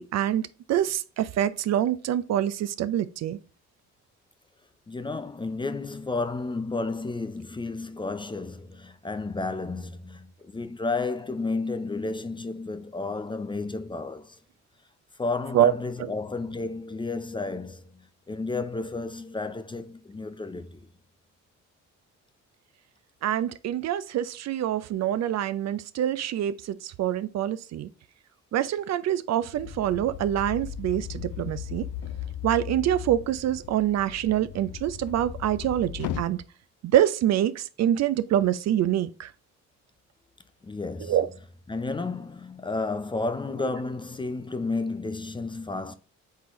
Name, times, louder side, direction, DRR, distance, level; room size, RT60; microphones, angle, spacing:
voice 1, 0.0-3.4 15.5-15.7 16.0-16.1 23.2-27.9 28.5-31.9 32.4-36.4 36.8-39.3 41.0-41.3, right 11 dB, 60° right, 0.4 m, -25 dB
voice 2, 4.9-14.4 15.2-20.9 40.6-41.2 41.7-46.0, left 3 dB, 15° left, 0.4 m, -32 dB
sound 1, 29.5-36.2, left 10 dB, 85° left, 0.5 m, -37 dB
4.3 x 3.7 x 3.0 m
cardioid pair, 90°, 30 cm